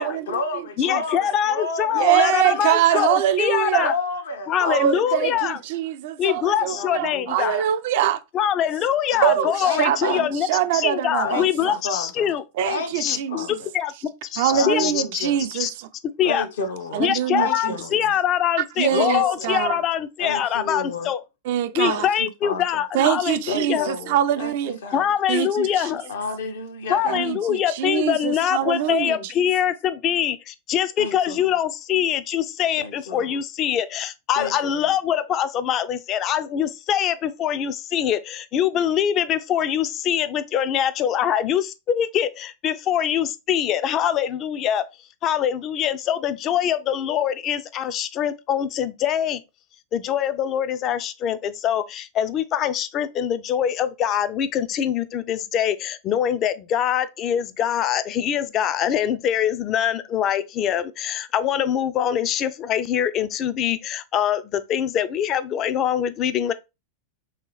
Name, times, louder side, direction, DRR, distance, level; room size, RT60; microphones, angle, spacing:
voice 1, 0.0-3.1 3.8-4.9 5.3-5.5 6.7-7.2 9.1-10.3 11.2-12.3 12.6-13.7 14.5-15.4 16.2-17.0 17.3-18.0 18.9-19.6 20.2-21.1 21.8-22.8 23.5-25.1 25.6-25.8 26.1-27.3 28.6-29.3 31.0-31.5 32.8-33.4 34.4-34.9, left 4 dB, 75° left, 0.7 m, -31 dB
voice 2, 0.8-3.9 4.5-5.6 6.2-7.6 8.3-10.5 10.7-12.4 13.0-13.5 13.7-13.9 14.3-15.3 15.5-15.7 16.2-16.5 17.0-21.2 21.7-23.9 24.9-26.1 26.9-44.9 45.2-49.4 49.9-66.5, left 9 dB, 40° left, 0.4 m, -24 dB
voice 3, 1.9-3.9 4.6-8.2 9.2-11.8 12.6-13.6 14.4-15.7 16.9-17.8 18.6-19.8 21.4-22.1 22.9-24.8 25.3-26.0 27.0-29.3, right 11 dB, 60° right, 0.4 m, -24 dB
3.0 x 2.8 x 3.0 m
hypercardioid pair, 105°, 0 cm